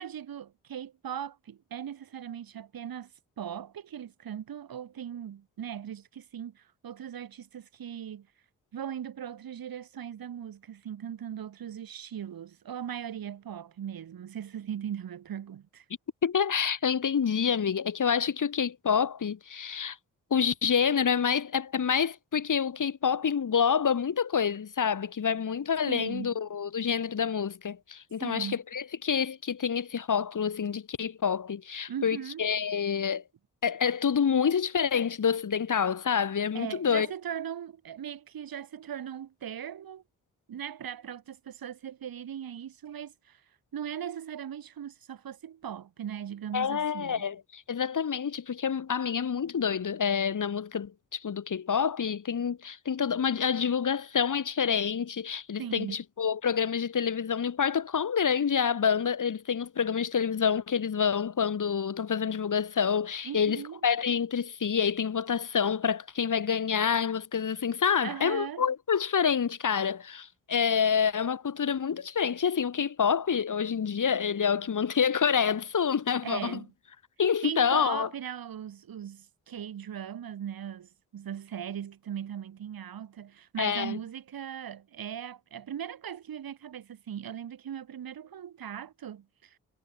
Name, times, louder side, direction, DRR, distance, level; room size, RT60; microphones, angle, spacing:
voice 1, 0.0-3.1 3.4-8.3 8.7-15.8 25.9-26.4 28.2-28.6 31.9-32.5 36.5-40.0 40.5-43.4 43.7-47.3 55.6-56.0 63.2-63.8 68.0-68.7 76.2-76.7 77.4-89.6, right 9 dB, 65° right, 6.3 m, -39 dB
voice 2, 16.2-20.0 20.3-33.2 33.6-37.1 46.5-76.6 77.2-78.1 83.6-84.0, left 7 dB, 55° left, 3.8 m, -27 dB
hypercardioid pair, 40°, 37 cm